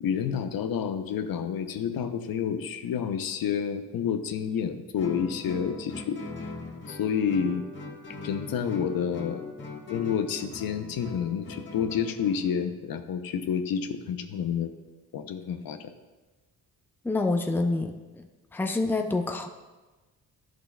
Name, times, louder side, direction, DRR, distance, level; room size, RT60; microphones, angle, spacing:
voice 1, 0.0-6.2 6.9-7.6 8.2-9.4 9.9-14.7 15.1-15.8, left 7 dB, 60° left, 8 dB, 0.7 m, -29 dB
Guitar, 5.0-12.4, left 3 dB, 30° left, 1.4 m, -40 dB
voice 2, 17.0-18.3 18.5-19.5, left 2 dB, 5° left, 5 dB, 0.6 m, -27 dB
11.0 x 6.2 x 2.2 m, 1.2 s
supercardioid pair, 65°, 39 cm